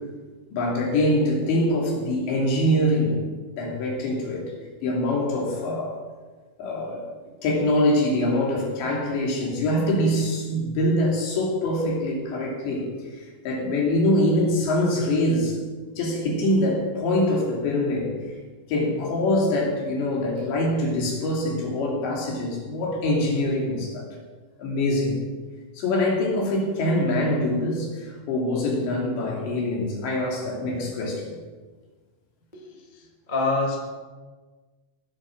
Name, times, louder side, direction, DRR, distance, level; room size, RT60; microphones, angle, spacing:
voice 1, 0.5-3.2 3.5-4.5 4.8-6.0 6.6-12.9 13.2-15.6 16.0-18.1 18.7-24.1 24.6-25.2 25.8-31.4, left 1 dB, 65° left, -2 dB, 5.1 m, -24 dB
voice 2, 32.5-33.8, left 3 dB, 25° left, -1 dB, 0.9 m, -27 dB
18.5 x 8.6 x 6.2 m, 1.4 s
omnidirectional pair, 5.5 m